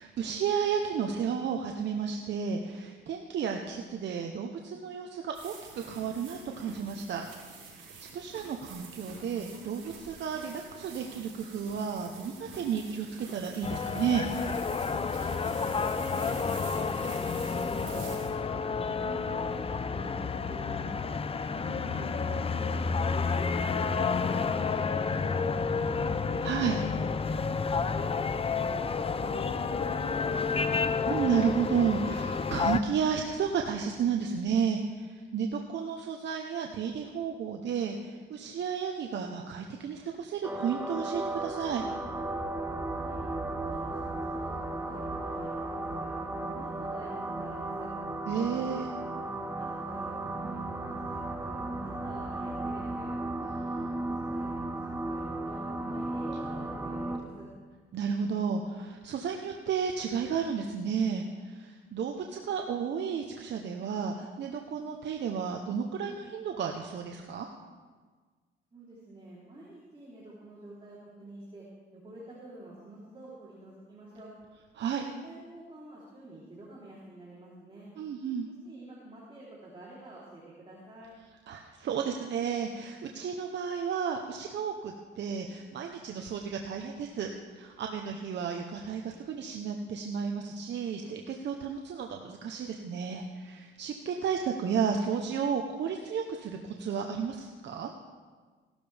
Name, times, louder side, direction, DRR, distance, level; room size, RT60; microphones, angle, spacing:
voice 1, 0.0-7.2 7.7-7.9 8.1-14.3 21.6-22.1 26.4-26.9 31.1-41.9 48.3-48.9 53.4-53.9 57.9-67.5 74.8-75.0 78.0-78.5 81.5-87.3 87.6-97.9, right 7 dB, 65° right, 3 dB, 1.0 m, -32 dB
sound 1, 5.3-18.3, right 4 dB, 85° right, 5.1 m, -47 dB
sound 2, 13.6-32.8, left 5 dB, 30° left, 0.6 m, -30 dB
voice 2, 15.5-15.8 16.1-18.0 18.4-21.1 21.8-23.9 24.2-26.1 26.9-27.1 27.4-28.3 28.6-30.8 42.9-43.2 43.6-47.9 48.7-48.8 49.5-53.2 54.0-54.8 55.1-57.5 68.7-71.7 71.9-74.3 75.0-77.9 78.6-81.1, right 1 dB, 25° right, -7 dB, 3.6 m, -48 dB
sound 3, 40.4-57.2, right 2 dB, 10° right, 1.2 m, -35 dB
17.0 x 12.5 x 3.5 m, 1.5 s
cardioid pair, 90°, 20 cm